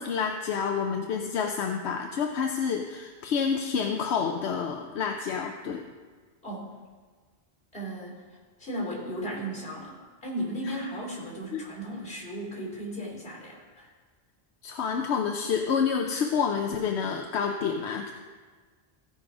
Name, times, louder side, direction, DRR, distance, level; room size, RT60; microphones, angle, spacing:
voice 1, 0.0-5.9 10.7-10.8 11.5-11.6 14.6-18.1, left 6 dB, 85° left, 3 dB, 0.9 m, -28 dB
voice 2, 6.4-6.7 7.7-8.2 8.6-13.9, right 1 dB, 60° left, -2 dB, 3.4 m, -36 dB
15.5 x 5.4 x 4.8 m, 1.4 s
omnidirectional pair, 1.1 m